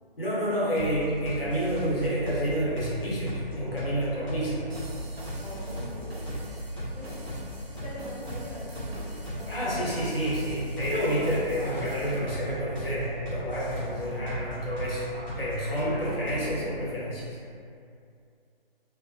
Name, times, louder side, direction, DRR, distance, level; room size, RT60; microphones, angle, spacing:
voice 1, 0.2-4.7 9.5-15.1 15.4-17.4, equal, 70° left, -8 dB, 0.9 m, -29 dB
sound 1, 0.8-16.7, equal, 35° left, 0.8 m, -37 dB
sound 2, 4.7-12.2, right 1 dB, 80° right, 0.6 m, -45 dB
voice 2, 5.4-6.2 6.9-7.4 7.8-9.0 9.3-9.7 13.9-14.2 15.8-16.8, equal, 10° right, -21 dB, 0.8 m, -43 dB
2.1 x 2.0 x 3.0 m, 2.5 s
figure-of-eight pair, 150°, 30 cm